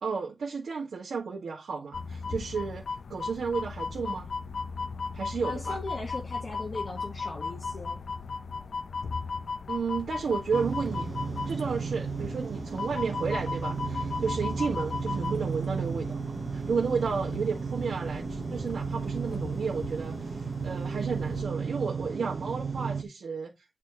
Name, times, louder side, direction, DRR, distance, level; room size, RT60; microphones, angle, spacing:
voice 1, 0.0-2.8 3.1-4.3 5.1-5.8 9.7-11.1 11.5-23.5, right 5 dB, 75° right, 1.6 m, -32 dB
sound 1, 1.9-21.4, left 4 dB, 60° left, 0.5 m, -37 dB
voice 2, 5.4-8.0, left 2 dB, 40° left, 1.2 m, -38 dB
sound 2, 10.5-23.0, right 5 dB, 45° right, 0.6 m, -34 dB
8.4 x 4.1 x 3.6 m
wide cardioid pair, 165°, 0 cm